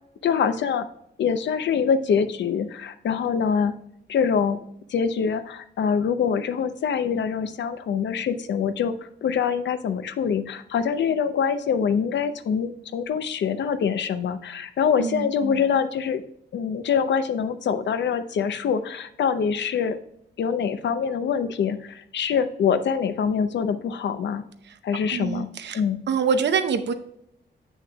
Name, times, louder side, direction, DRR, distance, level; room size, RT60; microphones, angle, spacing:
voice 1, 0.2-0.9 1.2-3.8 4.1-4.6 4.9-8.9 9.2-16.2 16.5-20.0 20.4-24.4 24.8-25.5 25.7-26.0, left 7 dB, 85° left, 10 dB, 0.6 m, -24 dB
voice 2, 15.0-15.6 25.1-25.8 26.1-26.9, right 6 dB, 75° right, 9 dB, 0.7 m, -25 dB
7.9 x 6.3 x 2.3 m, 0.73 s
wide cardioid pair, 130°, 18 cm